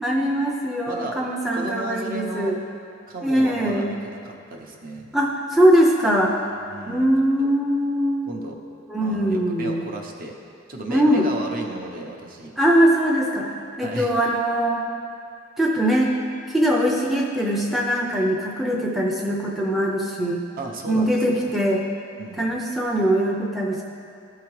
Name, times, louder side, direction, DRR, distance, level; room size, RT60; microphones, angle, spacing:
voice 1, 0.0-2.6 3.2-3.9 5.1-6.4 6.9-8.3 8.9-9.8 10.9-11.3 12.6-14.8 15.6-16.2 16.5-20.4 20.9-21.8 22.4-23.8, equal, ahead, -2 dB, 0.4 m, -21 dB
voice 2, 0.9-1.2 1.5-2.5 3.1-5.1 6.6-7.1 7.4-7.5 8.3-8.6 9.0-10.3 10.7-12.5 13.8-14.1 20.6-21.5 22.2-22.5, right 2 dB, 45° right, 1 dB, 0.7 m, -34 dB
12.5 x 4.7 x 3.1 m, 2.5 s
head